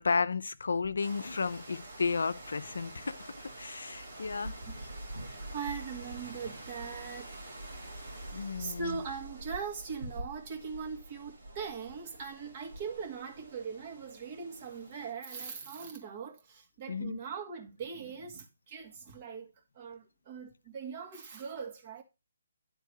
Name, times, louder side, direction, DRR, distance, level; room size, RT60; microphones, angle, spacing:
voice 1, 0.0-4.5 8.3-9.0 16.9-17.2, left 4 dB, 75° left, 0.5 m, -33 dB
sound 1, 1.0-15.1, right 1 dB, 70° right, 2.3 m, -46 dB
voice 2, 5.2-7.4 8.6-22.0, right 6 dB, 35° right, 2.1 m, -41 dB
10.0 x 3.7 x 4.7 m
hypercardioid pair, 150°, 0 cm